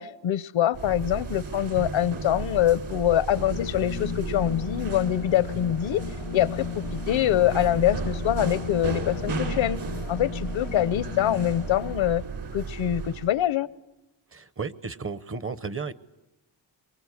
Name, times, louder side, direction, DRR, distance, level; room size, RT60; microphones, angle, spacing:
voice 1, 0.0-6.0 6.3-9.8 10.1-12.2 12.5-13.7, left 12 dB, 75° left, 17 dB, 0.9 m, -24 dB
sound 1, 0.7-13.3, right 4 dB, 60° right, 3.4 m, -34 dB
sound 2, 3.5-11.9, left 9 dB, 90° left, 1.3 m, -36 dB
voice 2, 14.3-15.9, right 5 dB, 30° right, 15 dB, 0.8 m, -33 dB
24.5 x 23.5 x 9.6 m, 0.98 s
wide cardioid pair, 140°, 47 cm